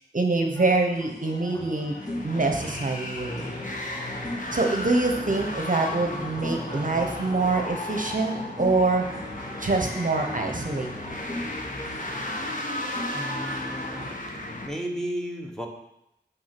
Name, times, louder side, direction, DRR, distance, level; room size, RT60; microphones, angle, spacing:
voice 1, 0.1-1.9 2.2-3.4 4.5-9.0 9.6-11.1, right 3 dB, 45° right, 3 dB, 0.9 m, -25 dB
sound 1, 0.5-14.1, left 1 dB, 20° left, 1.5 m, -40 dB
sound 2, 1.8-14.7, left 1 dB, 45° left, 1.2 m, -34 dB
voice 2, 13.1-14.1 14.6-15.7, equal, ahead, 0 dB, 1.2 m, -33 dB
6.2 x 6.0 x 6.0 m, 0.83 s
wide cardioid pair, 65°, 19 cm